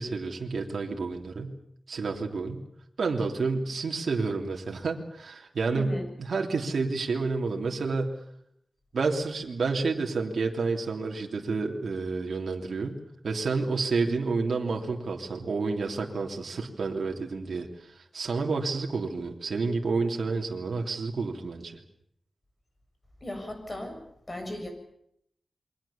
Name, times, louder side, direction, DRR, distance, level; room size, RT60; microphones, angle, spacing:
voice 1, 0.0-1.6 1.9-2.6 3.0-8.2 8.9-13.0 13.2-21.8, right 4 dB, 70° right, 2 dB, 3.1 m, -30 dB
voice 2, 5.7-6.0 23.2-24.0 24.3-24.7, left 1 dB, 25° left, 5 dB, 7.4 m, -36 dB
28.5 x 23.5 x 7.2 m, 0.73 s
wide cardioid pair, 100°, 0 cm